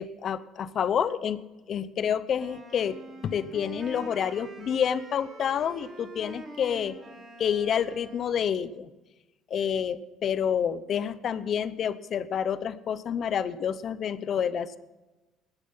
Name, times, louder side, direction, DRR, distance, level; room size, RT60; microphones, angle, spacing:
voice 1, 0.0-1.4 1.7-3.0 3.2-7.0 7.4-8.9 9.5-14.8, left 8 dB, 55° left, 15 dB, 0.8 m, -28 dB
Wind instrument woodwind instrument, 2.4-8.6, right 2 dB, 30° right, 4.3 m, -45 dB
16.0 x 10.0 x 5.6 m, 1.1 s
supercardioid pair, 70°, 0 cm